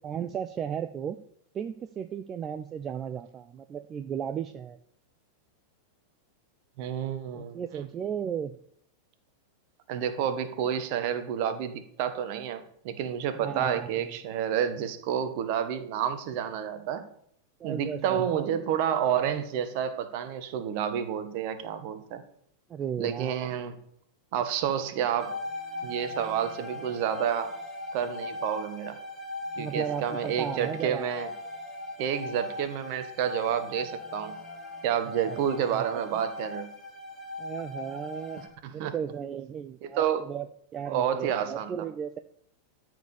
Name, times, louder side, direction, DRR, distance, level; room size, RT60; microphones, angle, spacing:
voice 1, 0.0-1.2 1.5-4.8 7.3-8.5 13.4-14.0 17.6-18.7 22.7-23.3 29.6-31.1 35.3-35.4 35.7-36.2 37.4-38.4 38.7-42.2, right 8 dB, 25° right, 10 dB, 0.5 m, -35 dB
voice 2, 6.8-7.9 9.9-17.0 17.6-22.2 23.0-23.8 24.3-25.4 25.8-27.5 27.9-29.0 29.6-31.3 32.0-34.3 34.8-36.7 38.6-38.9 39.8-40.2 40.9-41.7, right 9 dB, 45° right, 10 dB, 1.4 m, -29 dB
sound 1, 25.2-38.5, left 2 dB, 5° left, 3.0 m, -39 dB
13.0 x 4.9 x 7.1 m, 0.67 s
figure-of-eight pair, 90°, 0 cm